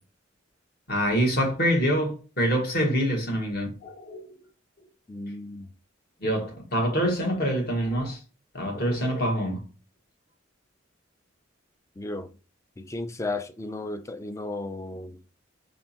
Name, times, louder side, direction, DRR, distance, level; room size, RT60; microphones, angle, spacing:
voice 1, 0.9-4.3 6.2-8.2 8.5-9.6, equal, 50° left, 1.5 m, -25 dB
voice 2, 5.1-5.7 12.0-12.3 12.8-15.2, left 2 dB, 15° left, 0.3 m, -34 dB
5.1 x 3.4 x 2.8 m
head